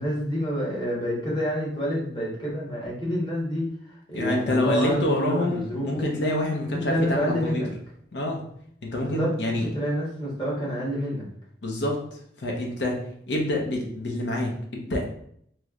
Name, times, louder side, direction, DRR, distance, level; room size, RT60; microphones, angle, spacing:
voice 1, 0.0-6.0 6.7-7.7 9.0-11.3, equal, 25° left, -5 dB, 1.2 m, -28 dB
voice 2, 4.1-7.6 8.1-8.4 8.8-9.7 11.6-13.0 13.3-15.0, left 1 dB, 75° left, 0 dB, 0.7 m, -27 dB
3.1 x 2.1 x 3.6 m, 0.67 s
head